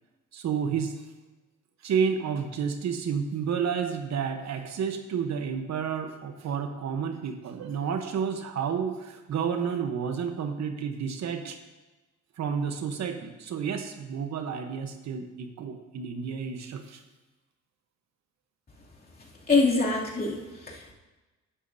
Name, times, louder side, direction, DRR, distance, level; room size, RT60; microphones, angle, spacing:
voice 1, 0.3-1.0 1.8-11.6 12.4-17.0, right 7 dB, 65° right, 6 dB, 1.0 m, -30 dB
voice 2, 19.5-20.9, left 3 dB, 30° left, -4 dB, 2.7 m, -25 dB
11.0 x 11.0 x 2.7 m, 1.2 s
cardioid pair, 90°, 30 cm